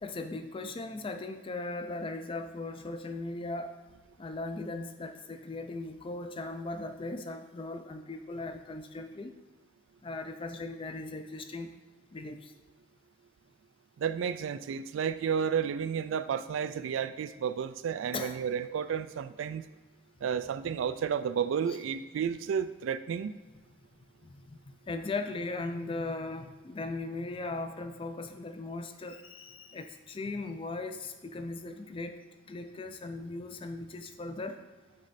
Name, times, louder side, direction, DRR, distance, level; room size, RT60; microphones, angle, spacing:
voice 1, 0.0-3.7 4.2-9.3 10.0-11.7 12.1-12.5 18.1-18.4 20.6-20.7 21.7-21.8 24.2-32.2 32.5-34.6, left 2 dB, 25° left, 7 dB, 0.4 m, -38 dB
voice 2, 14.0-19.6 20.2-23.4, right 7 dB, 85° right, 13 dB, 0.3 m, -32 dB
8.0 x 3.2 x 4.1 m, 1.2 s
head